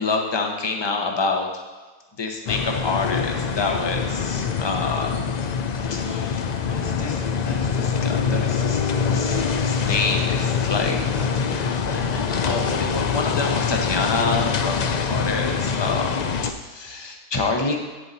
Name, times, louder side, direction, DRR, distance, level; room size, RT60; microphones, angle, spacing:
voice 1, 0.0-1.5 2.2-5.1 5.9-6.4 6.7-7.2 7.4-11.0 11.4-16.2 16.7-17.8, left 3 dB, 20° left, 3 dB, 0.9 m, -27 dB
sound 1, 2.5-16.5, left 6 dB, 75° left, 0.3 m, -24 dB
8.6 x 8.3 x 4.1 m, 1.3 s
omnidirectional pair, 1.5 m